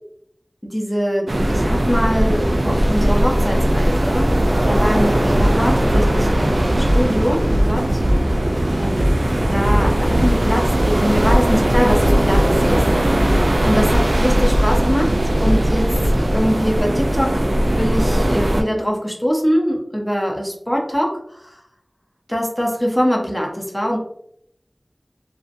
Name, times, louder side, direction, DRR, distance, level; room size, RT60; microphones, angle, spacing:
voice 1, 0.6-4.3 4.7-8.0 8.8-12.9 13.7-15.1 15.4-17.4 17.8-21.5 22.3-24.0, equal, 15° left, 0 dB, 0.6 m, -23 dB
sound 1, 1.3-18.6, right 1 dB, 70° right, 0.3 m, -19 dB
sound 2, 5.1-16.1, equal, 85° left, 0.9 m, -23 dB
2.7 x 2.0 x 2.5 m, 0.72 s
wide cardioid pair, 40°, 0 cm